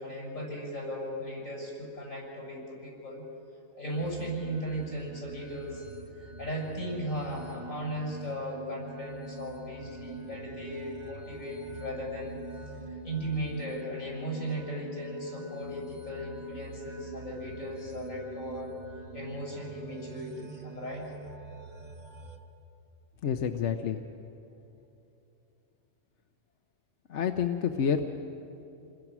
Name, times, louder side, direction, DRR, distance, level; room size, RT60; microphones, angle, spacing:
voice 1, 0.0-3.2 3.8-5.8 6.1-12.4 12.9-18.7 19.1-21.1, equal, 80° left, -3 dB, 6.7 m, -37 dB
sound 1, 3.9-22.4, right 2 dB, 35° right, 1.3 m, -45 dB
voice 2, 23.2-24.0 27.1-28.1, left 7 dB, 65° left, 6 dB, 1.1 m, -28 dB
28.0 x 21.0 x 6.1 m, 2.8 s
omnidirectional pair, 1.4 m